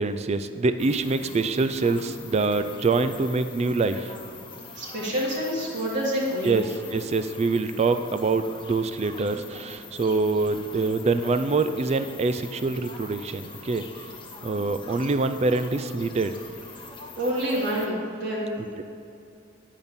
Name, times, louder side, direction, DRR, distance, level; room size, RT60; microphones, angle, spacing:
voice 1, 0.0-4.0 6.4-6.6 6.9-13.8 14.4-16.3 18.8-18.9, right 3 dB, 35° right, 10 dB, 0.4 m, -25 dB
sound 1, 0.8-17.9, left 3 dB, 25° left, 1.0 m, -43 dB
voice 2, 4.7-6.7 17.2-18.6, equal, 60° right, -6 dB, 1.9 m, -27 dB
10.0 x 5.3 x 7.0 m, 2.6 s
head